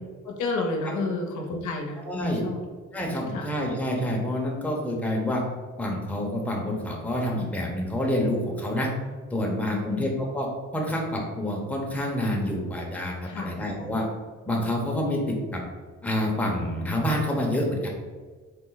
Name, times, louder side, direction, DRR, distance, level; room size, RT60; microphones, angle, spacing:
voice 1, 0.2-2.0 2.3-2.6 3.3-3.5 9.7-10.1 13.3-13.9, left 3 dB, 75° left, 1 dB, 0.8 m, -31 dB
voice 2, 2.0-2.4 2.9-5.4 5.8-8.9 9.3-10.5 10.7-14.1 14.5-15.6 16.0-17.9, left 1 dB, 5° left, -2 dB, 0.8 m, -27 dB
4.2 x 2.1 x 3.9 m, 1.4 s
cardioid pair, 90°, 30 cm